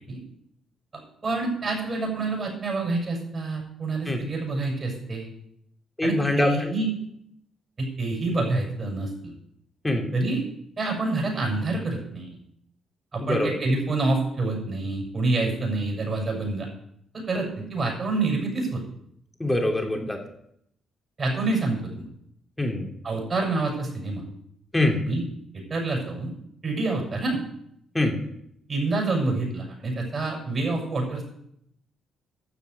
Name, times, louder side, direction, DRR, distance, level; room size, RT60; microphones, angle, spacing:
voice 1, 0.9-5.3 6.0-6.9 7.8-9.1 10.1-10.4 10.8-12.4 13.1-16.7 17.1-18.8 21.2-22.0 23.0-24.2 25.0-25.2 25.7-26.3 26.6-27.4 28.7-31.2, right 2 dB, 35° right, 1 dB, 6.8 m, -27 dB
voice 2, 6.0-6.7 9.8-10.1 13.2-13.5 19.4-20.2 22.6-22.9 24.7-25.0 27.9-28.2, left 1 dB, 15° left, 2 dB, 3.0 m, -24 dB
13.0 x 7.2 x 8.1 m, 0.73 s
cardioid pair, 90°, 0 cm